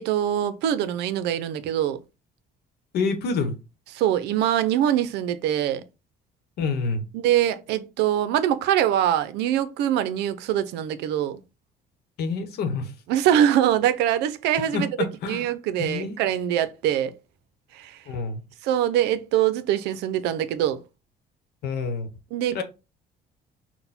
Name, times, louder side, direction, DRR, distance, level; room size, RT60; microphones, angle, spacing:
voice 1, 0.0-2.0 3.9-5.8 7.1-11.4 13.1-14.9 15.3-17.1 17.7-18.0 18.6-20.8 22.3-22.6, right 11 dB, 85° right, 0.5 m, -23 dB
voice 2, 2.9-3.6 6.6-7.1 12.2-12.9 14.7-15.5 15.8-16.2 18.1-18.4 21.6-22.1 22.5-22.6, left 4 dB, 75° left, 0.9 m, -27 dB
4.1 x 2.1 x 4.0 m
cardioid pair, 110°, 17 cm